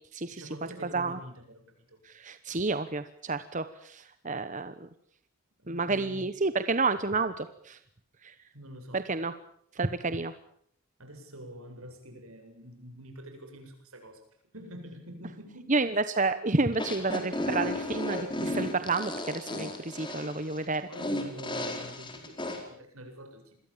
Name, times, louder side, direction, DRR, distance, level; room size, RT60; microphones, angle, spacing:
voice 1, 0.3-2.0 5.6-6.3 8.5-9.2 11.0-14.3 14.5-15.8 20.6-23.5, right 1 dB, 75° right, 5 dB, 7.9 m, -46 dB
voice 2, 2.0-4.9 5.7-7.8 8.2-8.3 8.9-9.3 9.7-10.3 15.7-20.9, right 3 dB, 35° right, 11 dB, 1.0 m, -30 dB
sound 1, 16.7-22.6, left 1 dB, 20° left, 4.5 m, -34 dB
27.5 x 22.0 x 7.4 m, 0.66 s
head